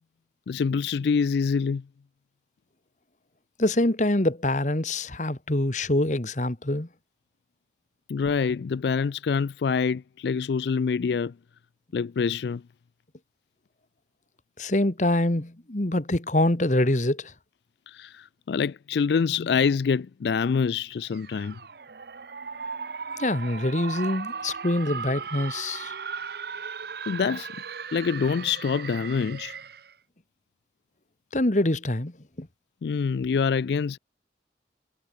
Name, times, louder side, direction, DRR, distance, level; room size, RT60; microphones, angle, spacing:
voice 1, 0.5-1.8 8.1-11.3 11.9-12.6 17.9-21.6 27.1-27.5 27.9-29.6 32.8-34.0, left 5 dB, 70° left, 0.4 m, -26 dB
voice 2, 3.6-6.9 14.6-17.3 23.2-25.9 31.3-32.5, left 1 dB, 40° left, 1.5 m, -25 dB
sound 1, 21.1-29.9, right 5 dB, 60° right, 0.7 m, -37 dB
head